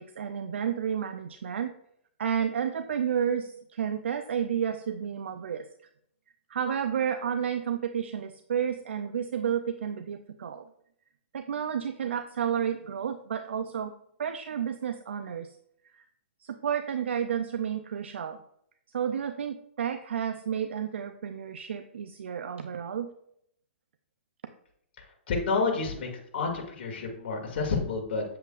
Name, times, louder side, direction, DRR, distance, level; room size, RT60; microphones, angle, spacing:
voice 1, 0.0-1.7 2.2-5.7 6.5-10.7 11.3-13.9 14.2-15.6 16.4-18.4 18.9-23.1, right 8 dB, 75° right, 9 dB, 0.5 m, -31 dB
voice 2, 25.3-28.2, left 4 dB, 55° left, 1 dB, 2.3 m, -29 dB
7.8 x 7.7 x 2.5 m, 0.70 s
hypercardioid pair, 120°, 6 cm